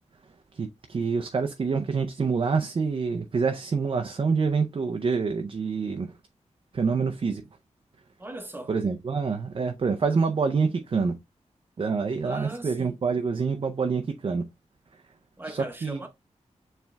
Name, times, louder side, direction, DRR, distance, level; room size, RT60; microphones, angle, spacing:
voice 1, 0.5-6.1 6.7-7.4 8.7-11.2 11.8-14.4 15.5-16.0, right 5 dB, 45° right, 0.5 m, -26 dB
voice 2, 8.2-8.7 12.2-13.0 15.4-16.1, right 2 dB, 15° right, 0.8 m, -39 dB
7.1 x 3.3 x 2.2 m
wide cardioid pair, 120°, 12 cm